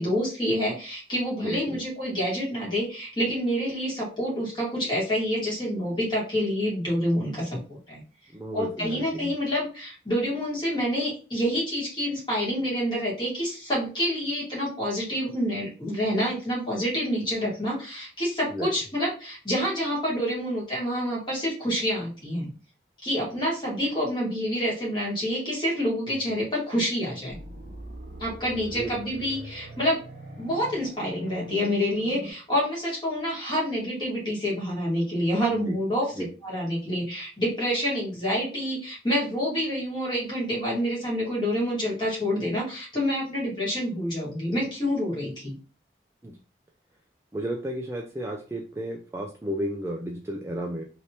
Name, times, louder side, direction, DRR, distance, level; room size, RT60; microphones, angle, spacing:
voice 1, 0.0-8.0 8.5-22.5 23.0-27.4 28.2-30.0 30.4-36.1 36.4-45.5, equal, 25° left, -5 dB, 1.6 m, -27 dB
voice 2, 1.4-1.8 8.3-9.3 18.5-18.7 28.7-28.9 35.7-35.8 36.2-36.3 46.2-46.3 47.3-50.8, right 1 dB, 15° right, 1 dB, 0.3 m, -33 dB
sound 1, 27.3-32.3, right 1 dB, 50° right, 0.8 m, -42 dB
3.2 x 2.7 x 2.7 m, 0.35 s
head